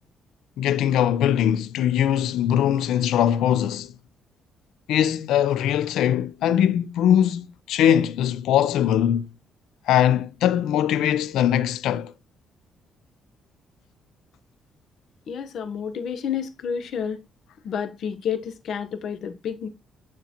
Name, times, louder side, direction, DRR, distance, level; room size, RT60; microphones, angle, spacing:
voice 1, 0.6-3.9 4.9-9.3 9.9-12.1, left 10 dB, 85° left, 0.5 m, -21 dB
voice 2, 15.3-17.2 17.6-19.7, left 7 dB, 70° left, 0.9 m, -30 dB
9.5 x 3.8 x 2.9 m
cardioid pair, 90°, 0 cm